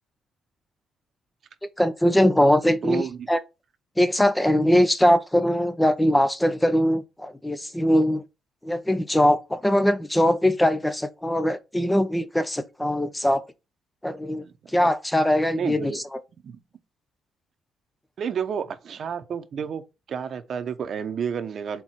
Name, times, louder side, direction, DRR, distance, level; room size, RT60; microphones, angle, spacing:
voice 1, 1.8-3.4 4.0-8.2 8.6-13.4 14.0-14.4 14.7-15.9, equal, 10° left, 0.7 m, -21 dB
voice 2, 2.8-3.3 14.4-14.9 15.6-16.0 16.4-16.6 18.2-19.8 20.1-21.8, right 7 dB, 55° right, 0.9 m, -31 dB
4.7 x 3.9 x 5.7 m
cardioid pair, 90°, 0 cm